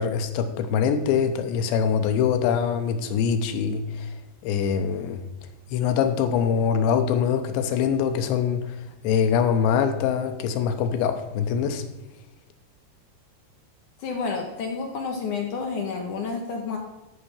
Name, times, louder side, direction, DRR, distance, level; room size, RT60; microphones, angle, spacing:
voice 1, 0.0-4.1 4.4-5.2 5.7-8.6 9.0-11.8, left 7 dB, 90° left, 8 dB, 3.1 m, -23 dB
voice 2, 14.0-16.8, left 4 dB, 70° left, 2 dB, 2.0 m, -30 dB
13.5 x 4.8 x 7.0 m, 1.1 s
omnidirectional pair, 4.9 m